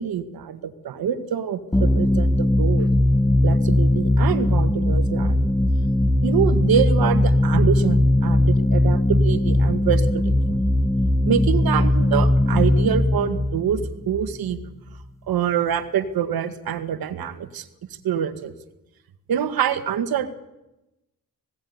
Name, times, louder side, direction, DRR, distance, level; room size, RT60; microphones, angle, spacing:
voice 1, 0.0-2.9 3.4-5.6 6.2-10.6 11.2-14.6 15.3-17.7 18.0-18.5 19.3-20.3, right 8 dB, 80° right, 9 dB, 1.8 m, -25 dB
sound 1, 1.7-15.0, left 1 dB, 10° left, 0.9 m, -19 dB
19.0 x 16.5 x 9.6 m, 0.95 s
cardioid pair, 75°, 36 cm